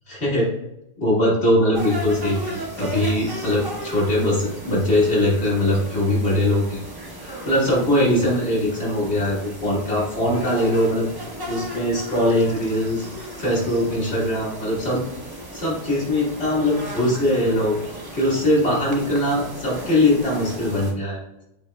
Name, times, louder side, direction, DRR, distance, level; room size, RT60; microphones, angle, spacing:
voice 1, 0.1-0.5 1.0-6.8 7.2-11.1 11.5-15.1 15.5-21.2, left 1 dB, 65° left, -6 dB, 1.9 m, -21 dB
sound 1, 1.7-20.9, right 1 dB, 25° right, 0.7 m, -35 dB
7.8 x 3.0 x 2.2 m, 0.88 s
omnidirectional pair, 1.2 m